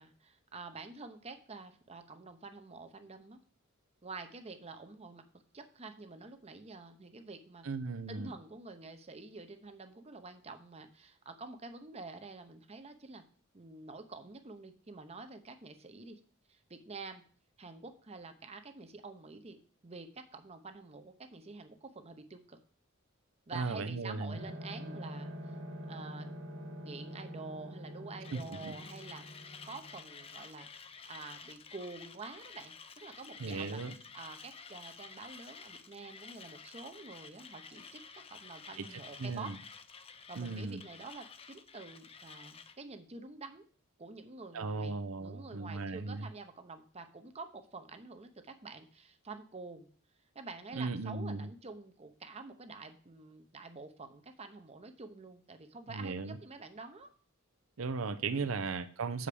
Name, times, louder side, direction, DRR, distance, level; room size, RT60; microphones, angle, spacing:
voice 1, 0.0-3.4 4.0-5.2 5.5-7.7 8.1-13.2 13.5-16.2 16.5-17.2 17.6-19.6 19.8-22.6 23.5-25.5 25.9-29.2 29.6-39.5 40.3-43.6 44.0-49.9 50.3-57.1 58.4-58.6, right 3 dB, 30° right, 7 dB, 0.8 m, -48 dB
voice 2, 7.6-8.3 23.5-24.4 28.3-28.7 33.4-33.9 38.8-38.9 39.2-39.6 40.4-40.8 44.5-46.3 50.7-51.5 55.9-56.4 57.8-59.3, right 4 dB, 75° right, 10 dB, 0.6 m, -37 dB
sound 1, 24.3-30.6, equal, 60° right, 1.7 m, -45 dB
Mechanisms, 28.2-42.8, left 5 dB, 30° left, 0.5 m, -51 dB
7.2 x 5.0 x 6.8 m, 0.44 s
head